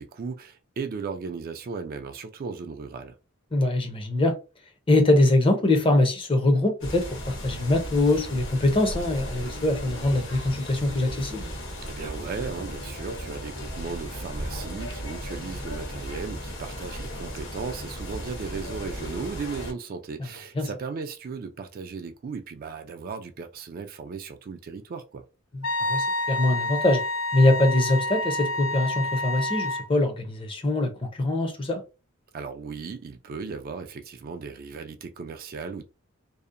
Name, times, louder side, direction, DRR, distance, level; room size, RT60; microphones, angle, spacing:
voice 1, 0.0-3.2 11.8-25.2 32.3-35.8, right 5 dB, 45° right, 0.3 m, -36 dB
voice 2, 3.5-4.3 4.9-11.5 20.6-20.7 25.5-27.0 27.3-31.8, left 2 dB, 25° left, 0.5 m, -23 dB
sound 1, 6.8-19.7, equal, 65° left, 0.9 m, -36 dB
Wind instrument woodwind instrument, 25.6-29.9, left 2 dB, 80° left, 0.4 m, -28 dB
2.7 x 2.0 x 2.5 m
head